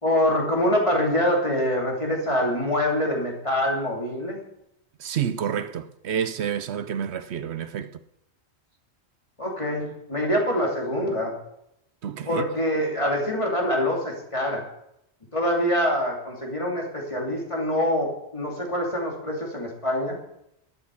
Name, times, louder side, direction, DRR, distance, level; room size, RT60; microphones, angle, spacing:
voice 1, 0.0-4.4 9.4-11.4 12.3-14.7 15.3-20.2, left 1 dB, 30° left, 3.0 m, -25 dB
voice 2, 5.0-8.0 12.0-12.4, right 8 dB, 75° right, 0.9 m, -29 dB
12.5 x 8.6 x 7.0 m
omnidirectional pair, 1.1 m